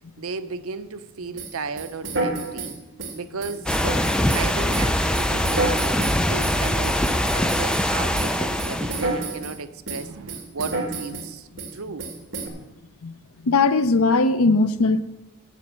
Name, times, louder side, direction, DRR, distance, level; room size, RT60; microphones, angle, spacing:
voice 1, 0.2-2.8 3.1-3.8 4.2-5.8 6.3-12.1, right 4 dB, 85° right, 0.6 m, -35 dB
sound 1, 1.4-7.9 8.1-9.6 9.9-11.3 11.6-11.7 12.0-12.5, right 2 dB, 65° right, 2.0 m, -30 dB
sound 2, 3.7-9.2, left 1 dB, 5° left, 0.4 m, -23 dB
voice 2, 13.4-15.0, left 3 dB, 90° left, 0.6 m, -19 dB
14.0 x 5.3 x 7.5 m
head